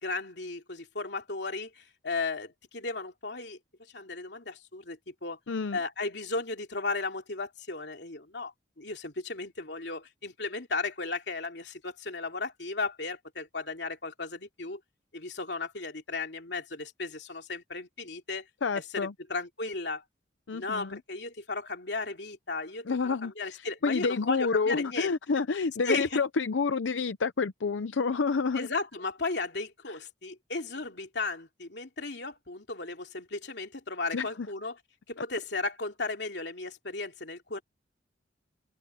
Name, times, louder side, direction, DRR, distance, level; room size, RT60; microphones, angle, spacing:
voice 1, 0.0-3.6 3.9-5.4 5.7-14.8 15.1-18.5 18.7-20.0 20.5-25.1 25.8-26.2 28.5-34.8 35.1-37.6, left 3 dB, 65° left, 2.9 m, -35 dB
voice 2, 5.5-5.8 18.6-19.1 20.5-21.0 22.9-28.7 29.9-30.0 34.1-34.3, left 4 dB, 90° left, 0.6 m, -29 dB
head